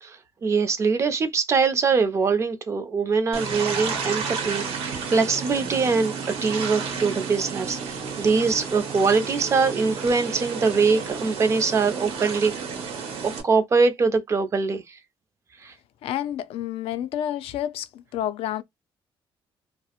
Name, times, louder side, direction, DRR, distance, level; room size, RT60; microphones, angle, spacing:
voice 1, 0.0-6.1 6.4-12.5 13.2-15.0 15.6-15.7, right 4 dB, 30° right, 0.4 m, -23 dB
sound 1, 3.3-13.4, right 5 dB, 85° right, 0.8 m, -32 dB
voice 2, 16.0-18.6, left 11 dB, 85° left, 0.4 m, -29 dB
2.3 x 2.0 x 2.8 m
cardioid pair, 170°, 10 cm